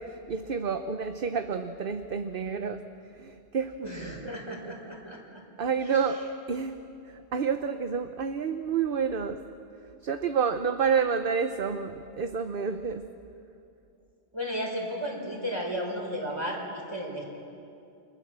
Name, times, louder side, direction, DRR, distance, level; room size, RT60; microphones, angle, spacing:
voice 1, 0.0-2.8 3.2-3.7 5.6-6.2 6.5-6.8 7.1-9.4 10.0-13.1, right 6 dB, 55° right, 8 dB, 1.0 m, -29 dB
voice 2, 3.8-5.4 5.8-5.9 14.3-16.6 16.9-17.2, equal, 20° right, -1 dB, 5.3 m, -34 dB
29.5 x 25.0 x 7.5 m, 2.6 s
omnidirectional pair, 1.2 m